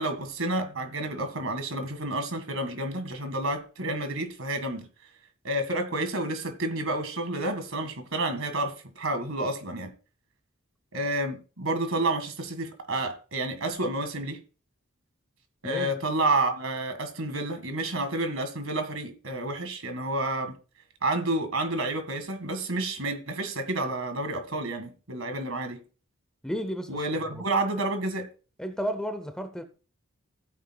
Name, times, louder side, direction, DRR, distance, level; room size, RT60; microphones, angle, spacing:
voice 1, 0.0-4.9 5.4-9.9 10.9-14.4 15.6-20.6 21.0-25.8 26.9-28.3, right 2 dB, 70° right, 2.0 m, -30 dB
voice 2, 26.4-26.9 27.3-27.5 28.6-29.6, equal, 5° left, 0.7 m, -32 dB
15.0 x 9.0 x 2.3 m
head